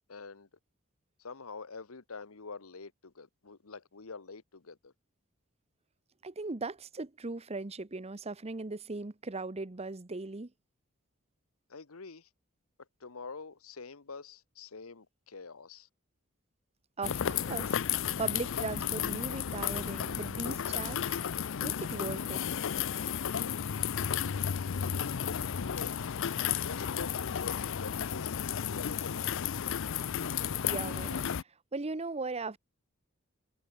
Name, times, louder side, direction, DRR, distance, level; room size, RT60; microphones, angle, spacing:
voice 1, 0.1-0.5 1.2-4.9 11.7-12.3 12.8-15.9 23.3-23.6 24.7-26.0 26.6-29.4, left 4 dB, 80° left, 1.2 m, -46 dB
voice 2, 6.2-10.5 17.0-17.8 18.2-21.2 21.6-22.4 30.6-31.3 31.7-32.6, right 3 dB, 30° right, 0.9 m, -38 dB
sound 1, 17.0-31.4, left 8 dB, 65° left, 0.5 m, -33 dB
head